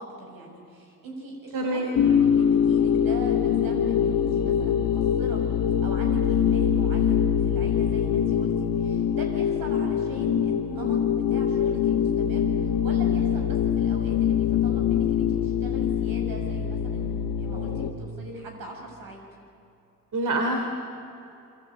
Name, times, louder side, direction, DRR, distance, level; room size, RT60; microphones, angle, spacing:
voice 1, 0.0-5.4 5.8-19.2, right 1 dB, 85° right, 1 dB, 7.5 m, -40 dB
voice 2, 1.5-1.9 20.1-20.6, right 2 dB, 65° right, 3 dB, 3.3 m, -25 dB
sound 1, 1.9-17.9, left 8 dB, 75° left, 2.1 m, -23 dB
28.0 x 23.5 x 8.9 m, 2.8 s
cardioid pair, 75°, 34 cm